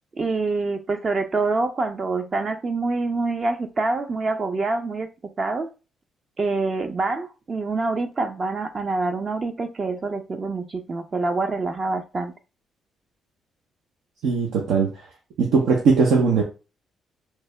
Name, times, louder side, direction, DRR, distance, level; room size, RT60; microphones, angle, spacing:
voice 1, 0.2-5.1 5.4-5.7 6.4-12.3, right 3 dB, 35° right, 6 dB, 0.5 m, -26 dB
voice 2, 14.2-14.9 15.4-16.4, right 5 dB, 85° right, 0 dB, 0.7 m, -19 dB
3.2 x 2.8 x 3.2 m, 0.31 s
cardioid pair, 90°, 0 cm